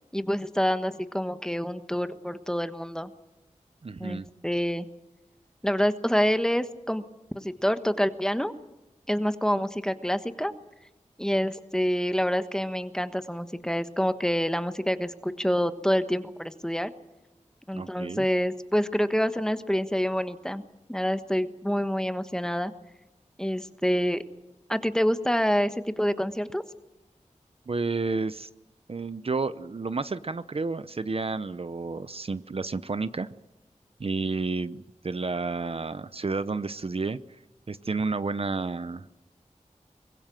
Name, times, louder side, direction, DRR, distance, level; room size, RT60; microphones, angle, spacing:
voice 1, 0.1-3.1 4.0-4.9 5.6-7.0 7.3-8.5 9.1-10.5 11.2-16.9 17.7-20.6 20.9-22.7 23.4-24.2 24.7-26.6, equal, 5° left, 10 dB, 1.3 m, -27 dB
voice 2, 3.8-4.3 17.7-18.3 27.7-28.5 28.9-33.3 34.0-37.2 37.7-39.2, right 3 dB, 50° right, 13 dB, 0.7 m, -31 dB
24.0 x 21.0 x 7.6 m, 1.0 s
wide cardioid pair, 85°, 12 cm